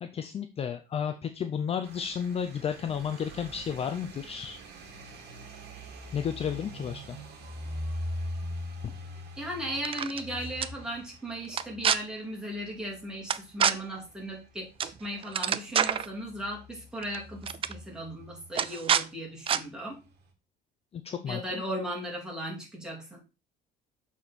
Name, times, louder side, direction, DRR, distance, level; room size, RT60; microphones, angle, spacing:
voice 1, 0.0-4.6 6.1-7.2 8.8-8.9 20.9-21.6, left 7 dB, 30° left, 8 dB, 0.5 m, -32 dB
sound 1, 1.8-19.1 19.4-20.3, equal, 60° right, 2.1 m, -43 dB
voice 2, 9.4-20.0 21.3-23.2, equal, 5° right, -3 dB, 2.9 m, -37 dB
sound 2, 9.7-10.2 10.6-10.7 11.5-12.0 13.3-13.7 14.8-15.0 15.2-16.1 17.0-17.2 17.4-17.7 18.5-19.0 19.5-19.6, right 8 dB, 30° right, 0.4 m, -26 dB
7.0 x 4.2 x 4.4 m, 0.30 s
cardioid pair, 135°, 19 cm